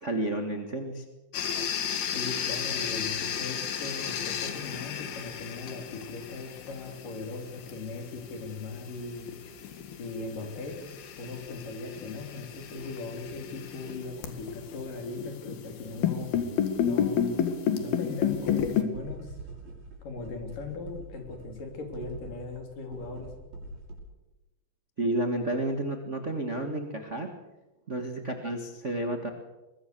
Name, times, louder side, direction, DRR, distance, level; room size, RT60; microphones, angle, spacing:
voice 1, 0.0-1.0 25.0-27.3 27.9-29.3, right 1 dB, 40° right, 4 dB, 1.1 m, -31 dB
sound 1, 1.3-18.8, left 8 dB, 80° left, 3.8 m, -32 dB
voice 2, 2.1-9.3 10.0-10.8 11.2-16.4 16.8-17.4 17.8-19.4 20.0-23.3, left 3 dB, 60° left, 4 dB, 5.0 m, -39 dB
sound 2, 18.2-24.0, right 2 dB, 70° right, 7.0 m, -44 dB
23.0 x 21.0 x 6.9 m, 1.0 s
omnidirectional pair, 4.4 m